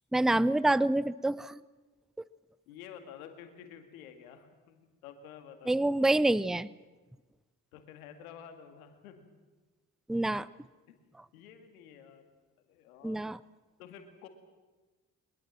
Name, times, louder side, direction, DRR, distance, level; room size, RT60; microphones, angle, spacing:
voice 1, 0.1-1.6 2.2-2.3 5.7-6.7 10.1-10.5 13.0-13.4, right 2 dB, ahead, 20 dB, 0.6 m, -27 dB
voice 2, 2.7-5.9 7.7-9.3 10.9-11.0 11.3-12.2 12.6-13.2 13.8-14.3, left 8 dB, 85° left, 7 dB, 2.2 m, -50 dB
23.0 x 22.0 x 7.6 m, 1.2 s
hypercardioid pair, 45°, 42 cm